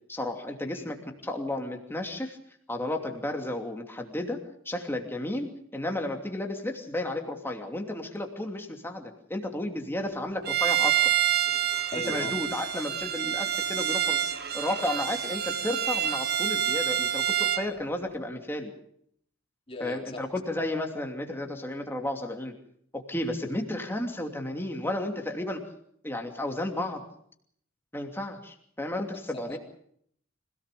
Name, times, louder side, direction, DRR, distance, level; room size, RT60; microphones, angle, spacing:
voice 1, 0.1-1.0 1.2-2.4 2.7-11.0 12.1-14.2 14.5-18.7 19.8-22.5 22.9-25.6 26.0-27.0 27.9-29.6, left 1 dB, 10° left, 3 dB, 2.8 m, -33 dB
Bowed string instrument, 10.4-17.7, right 10 dB, 50° right, 1.3 m, -27 dB
voice 2, 11.9-12.4 19.7-20.2 29.3-29.6, left 2 dB, 30° left, 0 dB, 3.7 m, -38 dB
25.5 x 18.0 x 6.9 m, 0.67 s
head